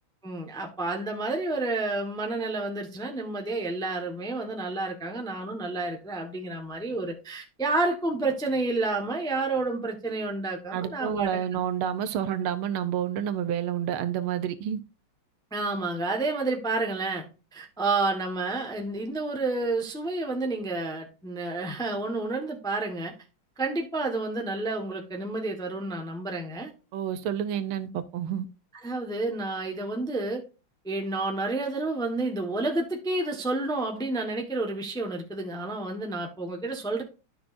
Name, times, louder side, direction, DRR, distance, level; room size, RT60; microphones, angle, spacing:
voice 1, 0.2-11.4 15.5-17.3 17.5-23.1 23.6-26.7 28.8-30.4 30.8-37.0, right 2 dB, 5° left, 0.8 m, -30 dB
voice 2, 10.7-14.8 26.9-28.5, right 9 dB, 75° right, 1.6 m, -29 dB
12.0 x 6.0 x 2.6 m
omnidirectional pair, 2.4 m